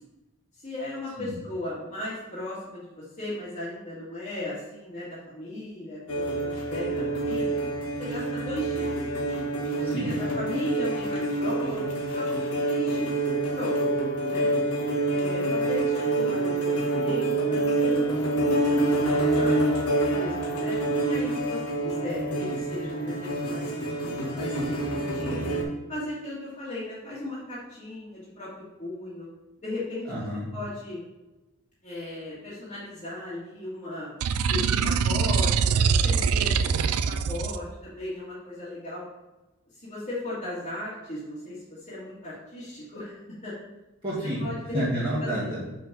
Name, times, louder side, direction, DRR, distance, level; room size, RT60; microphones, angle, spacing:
voice 1, 0.5-7.6 8.0-8.9 9.7-12.3 12.6-13.2 13.5-13.8 14.2-14.5 15.0-19.5 20.0-20.8 21.0-24.8 25.1-25.5 25.9-28.5 28.8-29.3 29.6-30.1 30.5-31.0 31.8-34.1 34.5-39.0 39.7-43.5 44.4-45.3, left 1 dB, 30° left, -10 dB, 1.8 m, -37 dB
sound 1, 6.1-25.6, right 2 dB, 90° left, 1.5 m, -27 dB
voice 2, 9.8-10.2 30.1-30.5 44.0-44.5 44.7-45.6, equal, 20° right, -11 dB, 1.8 m, -29 dB
sound 2, 34.2-37.6, right 6 dB, 85° right, 0.4 m, -23 dB
5.8 x 4.5 x 5.9 m, 1.1 s
head